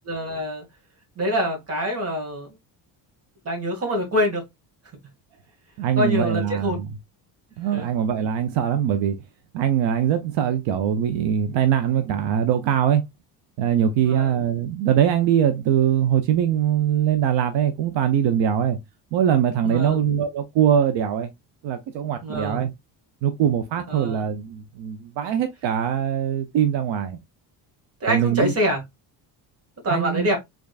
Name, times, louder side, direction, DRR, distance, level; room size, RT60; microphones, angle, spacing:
voice 1, 0.0-0.6 1.1-2.5 3.4-4.4 6.0-6.8 7.7-7.9 14.0-14.3 19.6-20.0 22.2-22.6 23.9-24.2 28.0-28.8 29.8-30.4, equal, 30° right, 1.8 m, -25 dB
voice 2, 5.8-6.9 7.6-9.2 9.5-13.0 13.6-18.8 19.1-21.3 21.6-22.7 23.2-27.2 28.1-28.5 29.9-30.3, right 9 dB, 80° right, 0.7 m, -22 dB
3.8 x 3.5 x 2.3 m
cardioid pair, 160°, 44 cm